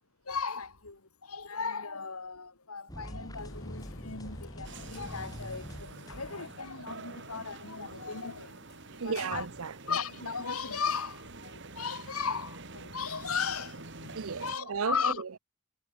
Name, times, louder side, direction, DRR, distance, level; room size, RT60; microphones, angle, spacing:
voice 1, 0.3-8.6 9.0-9.4 9.9-15.2, left 5 dB, 80° left, 2.8 m, -36 dB
sound 1, 2.9-6.7, equal, 15° left, 4.7 m, -44 dB
sound 2, 3.3-9.4, left 1 dB, 60° left, 3.1 m, -54 dB
sound 3, 4.6-14.6, right 3 dB, 55° right, 3.2 m, -47 dB
voice 2, 8.8-10.0 14.1-15.4, right 5 dB, 70° right, 0.6 m, -35 dB
head